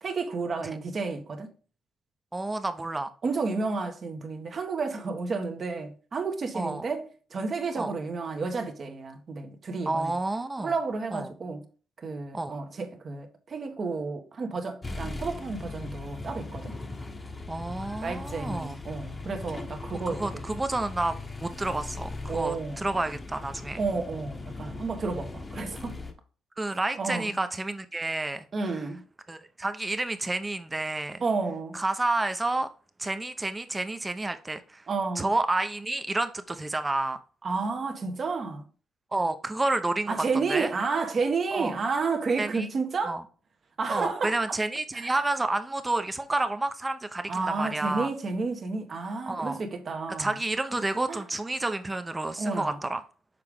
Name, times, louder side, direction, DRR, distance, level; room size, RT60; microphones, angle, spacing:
voice 1, 0.0-1.5 3.2-10.2 10.6-11.6 12.0-16.7 18.0-20.4 22.3-22.8 23.8-26.0 26.9-27.3 28.5-29.0 31.2-31.8 34.9-35.3 37.4-38.6 40.1-43.2 43.8-44.6 44.9-45.1 47.3-50.3 51.1-51.2 52.4-52.8, right 4 dB, 45° right, 1.3 m, -31 dB
voice 2, 2.3-3.1 6.5-6.8 7.8-7.9 9.9-10.7 11.1-11.3 12.3-12.5 17.5-18.8 20.1-23.8 26.6-28.5 28.7-28.8 29.3-31.2 31.7-32.7 33.0-34.8 35.2-37.2 39.1-40.2 40.5-40.7 41.5-41.7 42.4-42.7 43.0-43.2 43.9-48.1 49.3-49.6 50.2-53.0, right 2 dB, 15° right, 0.9 m, -30 dB
sound 1, 14.8-26.1, left 3 dB, 25° left, 1.1 m, -39 dB
6.8 x 4.7 x 3.6 m
cardioid pair, 90°, 0 cm